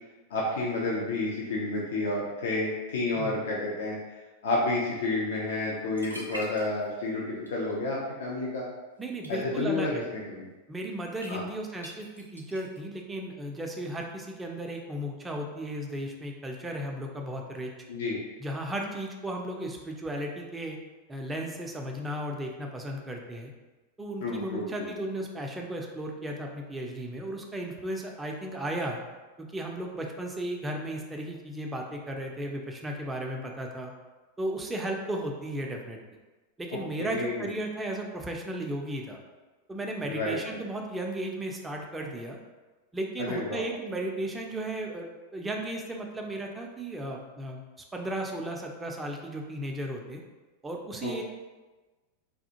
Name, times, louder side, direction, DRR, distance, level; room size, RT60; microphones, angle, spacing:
voice 1, 0.3-4.0 4.4-7.2 7.5-8.7 9.3-10.5 11.3-11.4 17.9-18.2 24.2-24.9 37.0-37.5 40.0-40.6 43.2-43.6 51.0-51.2, left 2 dB, 60° left, -4 dB, 0.5 m, -30 dB
sound 1, 5.7-5.8 6.0-7.1 7.4-7.8 9.0-9.3 11.2-11.3 11.8-12.8, equal, 85° right, 0.5 m, -42 dB
voice 2, 9.0-10.1 10.7-17.7 18.4-20.8 21.1-23.5 24.0-29.0 29.4-33.9 34.4-36.0 36.6-39.2 39.7-42.4 42.9-45.1 45.3-47.6 47.9-50.2 50.6-51.2, right 1 dB, 10° right, 1 dB, 0.4 m, -35 dB
3.4 x 2.3 x 2.8 m, 1.2 s
figure-of-eight pair, 90°, 0 cm